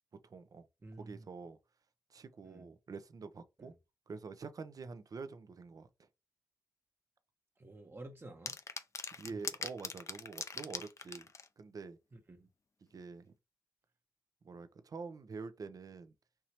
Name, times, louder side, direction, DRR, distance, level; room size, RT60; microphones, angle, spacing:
voice 1, 0.2-0.7 1.0-1.6 2.1-3.7 4.1-5.9 9.2-12.0 12.9-13.3 14.4-16.1, right 4 dB, 50° right, 0.7 m, -47 dB
voice 2, 0.8-1.3 2.4-2.7 3.6-3.7 7.6-8.6 9.3-9.4 12.1-12.5, right 2 dB, 30° right, 1.0 m, -51 dB
sound 1, 8.5-11.5, left 4 dB, 40° left, 0.6 m, -41 dB
4.6 x 2.8 x 3.0 m
supercardioid pair, 45°, 8 cm